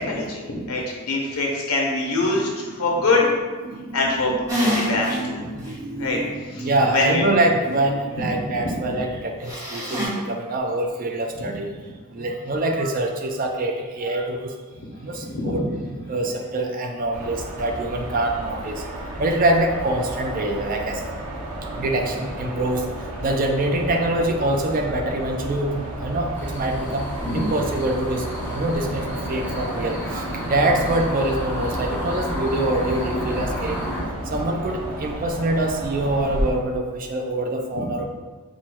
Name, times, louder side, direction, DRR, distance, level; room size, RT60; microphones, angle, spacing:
voice 1, 0.0-3.3 3.9-5.4 6.0-6.2 6.5-7.2 8.2-8.3 8.6-8.7 11.4-11.5 14.7-14.8 15.1-15.6 27.2-27.4 34.3-34.4, left 2 dB, 85° left, -2 dB, 1.0 m, -24 dB
voice 2, 2.8-3.4 3.7-11.7 12.1-14.5 15.0-15.6 16.1-21.2 21.6-22.9 23.2-27.1 27.3-33.9 34.3-38.1, right 1 dB, 40° right, 3 dB, 0.4 m, -25 dB
sound 1, 4.5-5.2 5.6-5.7 9.4-10.1, right 1 dB, 15° right, 1.1 m, -25 dB
sound 2, 17.1-36.5, right 1 dB, 85° right, 0.8 m, -32 dB
sound 3, 26.3-34.0, equal, 10° left, 0.7 m, -32 dB
4.4 x 2.2 x 4.5 m, 1.4 s
head